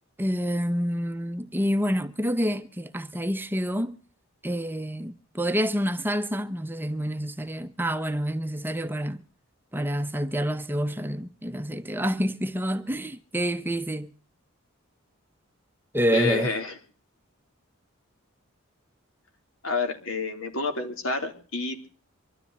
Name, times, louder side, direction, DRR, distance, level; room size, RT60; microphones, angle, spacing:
voice 1, 0.2-4.0 4.4-9.2 9.7-14.1 15.9-16.5, equal, 10° right, 0.8 m, -28 dB
voice 2, 16.1-16.7 19.6-21.9, left 3 dB, 70° left, 3.8 m, -29 dB
24.5 x 12.5 x 4.2 m
head